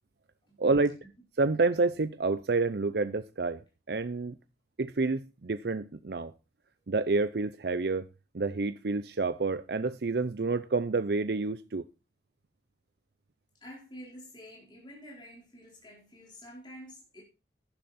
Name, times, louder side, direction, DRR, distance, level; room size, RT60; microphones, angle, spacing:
voice 1, 0.6-1.0 1.4-3.6 3.9-4.3 4.8-6.3 6.9-8.1 8.3-11.8, right 3 dB, 60° right, 0.6 m, -28 dB
voice 2, 13.6-17.2, equal, 25° left, 4.3 m, -48 dB
11.5 x 10.5 x 4.2 m
head